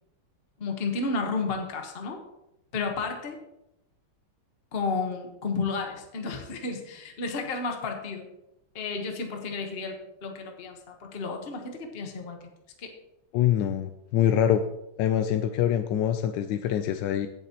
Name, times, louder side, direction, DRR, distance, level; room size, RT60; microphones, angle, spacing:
voice 1, 0.6-2.2 2.7-3.4 4.7-8.3 8.7-12.5 12.8-12.9, left 4 dB, 35° left, 3 dB, 1.3 m, -32 dB
voice 2, 13.3-14.6 15.0-17.3, left 10 dB, 80° left, 8 dB, 1.3 m, -24 dB
16.5 x 7.2 x 2.9 m, 0.88 s
omnidirectional pair, 2.0 m